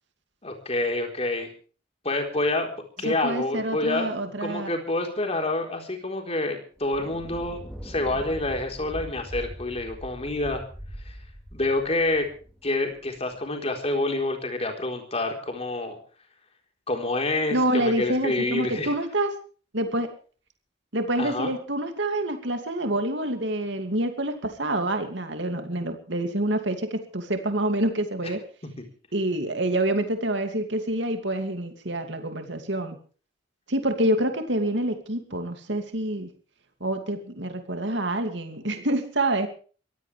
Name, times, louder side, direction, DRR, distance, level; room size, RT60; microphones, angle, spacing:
voice 1, 0.4-1.5 2.0-4.1 4.4-10.6 11.5-12.3 12.6-16.0 16.9-18.9 21.2-21.5, left 2 dB, 35° left, 3 dB, 4.2 m, -27 dB
voice 2, 3.0-4.7 17.5-19.3 19.7-20.1 20.9-28.4 29.1-33.0 33.7-36.3 36.8-39.5, right 1 dB, 65° right, 6 dB, 2.6 m, -27 dB
Thunder, 6.8-13.4, equal, ahead, 4.9 m, -41 dB
23.0 x 16.0 x 3.4 m, 0.40 s
head